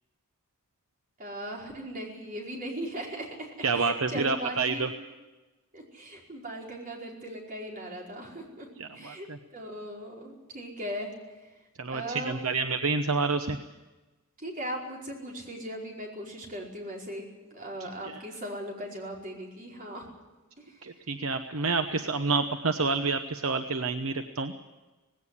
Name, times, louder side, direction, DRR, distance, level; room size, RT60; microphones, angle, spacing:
voice 1, 1.2-4.9 5.7-8.7 8.9-11.1 11.5-11.6 11.9-12.5 14.4-20.1 20.6-20.8, equal, 40° right, -1 dB, 5.0 m, -38 dB
voice 2, 3.6-4.9 8.8-9.4 11.8-13.6 18.0-18.2 20.8-24.5, right 4 dB, 70° right, 7 dB, 1.0 m, -28 dB
18.5 x 17.5 x 9.9 m, 1.1 s
head